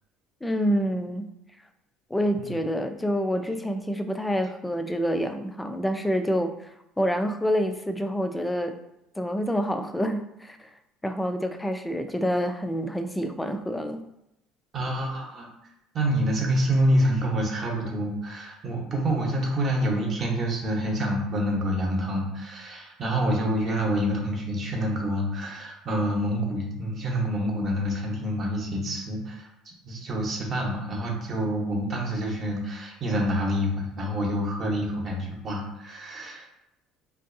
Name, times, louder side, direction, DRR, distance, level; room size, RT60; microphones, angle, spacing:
voice 1, 0.4-1.3 2.1-8.8 9.2-10.7 11.0-14.1, equal, 5° left, 7 dB, 0.3 m, -27 dB
voice 2, 14.7-15.5 15.9-36.5, equal, 35° right, 0 dB, 0.9 m, -27 dB
4.5 x 2.6 x 2.6 m, 0.83 s
cardioid pair, 125°, 0 cm